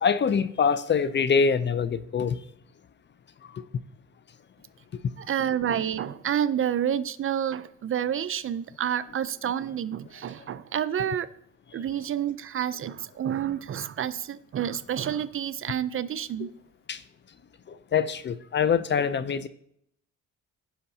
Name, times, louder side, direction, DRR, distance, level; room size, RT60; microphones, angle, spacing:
voice 1, 0.0-2.4 16.9-17.0 17.7-19.5, left 6 dB, 35° left, 0.5 m, -24 dB
voice 2, 5.2-11.3 11.7-16.5, right 9 dB, 45° right, 0.5 m, -29 dB
16.5 x 5.6 x 2.7 m
cardioid pair, 80°, 31 cm